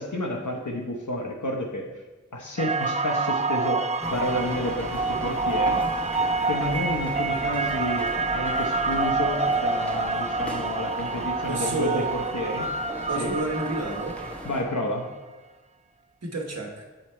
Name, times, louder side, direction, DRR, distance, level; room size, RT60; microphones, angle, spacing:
voice 1, 0.0-1.9 2.3-3.8 4.1-5.8 6.5-8.0 8.3-12.7 13.2-13.3 14.4-15.1, left 1 dB, 70° left, 0 dB, 0.9 m, -30 dB
sound 1, 2.6-14.9, right 3 dB, 25° right, 0.4 m, -27 dB
sound 2, 4.0-14.6, equal, 5° left, 0.9 m, -38 dB
voice 2, 11.5-12.1 13.1-14.2 16.2-16.9, right 2 dB, 55° right, 1 dB, 1.2 m, -30 dB
7.9 x 4.3 x 4.4 m, 1.2 s
wide cardioid pair, 45°, 31 cm